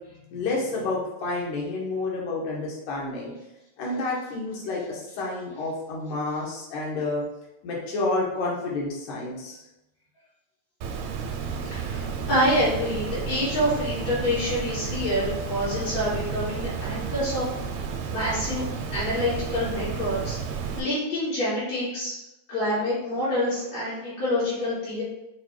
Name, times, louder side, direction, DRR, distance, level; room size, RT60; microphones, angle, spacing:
voice 1, 0.3-3.3 3.8-7.2 7.6-9.6, left 2 dB, 85° left, -4 dB, 2.5 m, -29 dB
Water, 10.8-20.8, right 6 dB, 80° right, 1.8 m, -32 dB
voice 2, 11.7-17.5 18.1-18.6 18.9-20.4 20.8-22.2 22.5-25.0, left 1 dB, 65° left, -11 dB, 2.9 m, -27 dB
6.5 x 2.2 x 3.1 m, 0.92 s
omnidirectional pair, 3.3 m